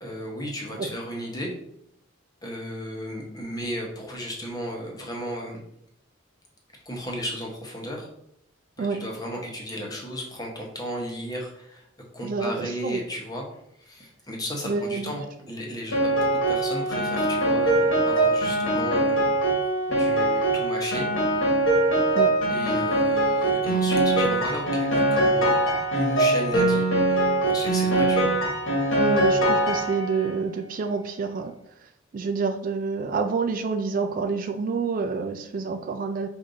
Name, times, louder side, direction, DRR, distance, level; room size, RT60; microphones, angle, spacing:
voice 1, 0.0-1.5 2.4-5.6 6.9-8.1 8.8-11.9 12.1-13.4 13.8-19.3 19.9-21.1 22.5-25.5 25.9-28.3, equal, 20° left, -1 dB, 1.0 m, -34 dB
voice 2, 12.2-13.0 14.7-15.2 22.1-22.4 29.0-31.5 32.1-36.3, right 4 dB, 45° right, 6 dB, 0.3 m, -28 dB
Piano, 15.9-30.3, right 1 dB, 85° left, 1.3 m, -22 dB
5.2 x 2.6 x 3.9 m, 0.74 s
head